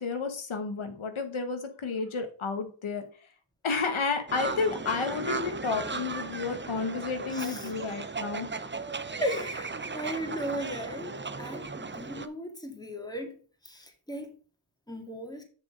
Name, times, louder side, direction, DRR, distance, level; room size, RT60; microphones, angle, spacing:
voice 1, 0.0-3.0 3.6-8.5, left 4 dB, 80° left, 1.4 m, -31 dB
sound 1, 4.3-12.3, right 4 dB, 25° right, 0.6 m, -36 dB
voice 2, 7.3-7.7 9.2-14.3 14.9-15.4, equal, 10° left, 2.1 m, -36 dB
6.7 x 6.2 x 5.4 m
wide cardioid pair, 70°, 48 cm